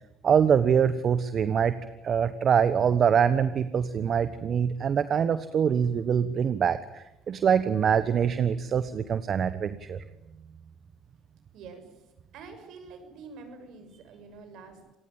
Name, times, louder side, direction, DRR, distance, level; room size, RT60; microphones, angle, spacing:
voice 1, 0.2-1.8 2.0-10.0, right 7 dB, 50° right, 13 dB, 1.3 m, -24 dB
voice 2, 11.5-12.1 12.3-14.8, right 4 dB, 70° right, 7 dB, 6.8 m, -46 dB
27.0 x 19.5 x 8.9 m, 0.89 s
hypercardioid pair, 65°, 0 cm